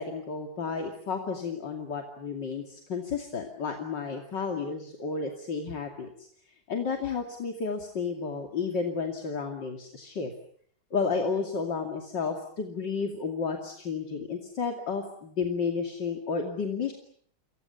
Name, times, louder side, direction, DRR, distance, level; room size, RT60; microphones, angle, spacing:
voice 1, 0.0-6.3 6.7-10.3 10.9-16.9, left 5 dB, 75° left, 3 dB, 3.2 m, -32 dB
30.0 x 25.5 x 7.0 m, 0.63 s
omnidirectional pair, 1.9 m